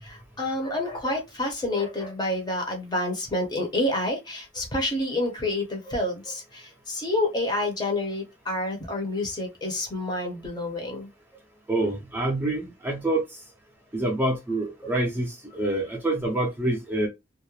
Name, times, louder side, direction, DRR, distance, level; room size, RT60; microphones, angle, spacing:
voice 1, 0.0-11.1 14.8-14.9, left 1 dB, 25° left, 0.7 m, -28 dB
voice 2, 11.7-13.4 13.9-17.1, right 1 dB, 10° right, 0.5 m, -26 dB
2.3 x 2.1 x 2.9 m
head